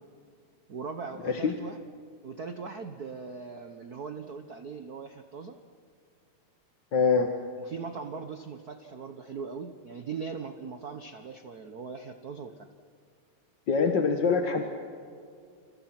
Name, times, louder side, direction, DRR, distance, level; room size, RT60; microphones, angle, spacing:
voice 1, 0.7-1.8 2.2-5.6 7.6-12.7, right 5 dB, 85° right, 7 dB, 0.8 m, -40 dB
voice 2, 1.2-1.5 6.9-7.3 13.7-14.6, left 5 dB, 45° left, 4 dB, 1.7 m, -24 dB
29.0 x 28.0 x 6.0 m, 2.3 s
omnidirectional pair, 3.4 m